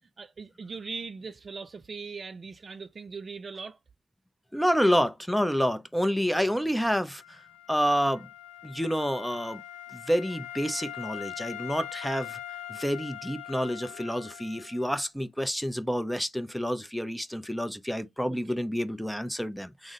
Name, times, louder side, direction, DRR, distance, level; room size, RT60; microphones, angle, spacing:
voice 1, 0.0-3.8 18.5-18.6, right 4 dB, 45° right, 0.3 m, -40 dB
voice 2, 4.5-7.4 7.7-8.3 8.6-9.6 9.9-12.4 12.7-19.9, equal, ahead, 0.6 m, -28 dB
Wind instrument woodwind instrument, 7.2-14.9, left 12 dB, 85° left, 0.4 m, -42 dB
3.6 x 2.1 x 3.6 m
hypercardioid pair, 40°, 0 cm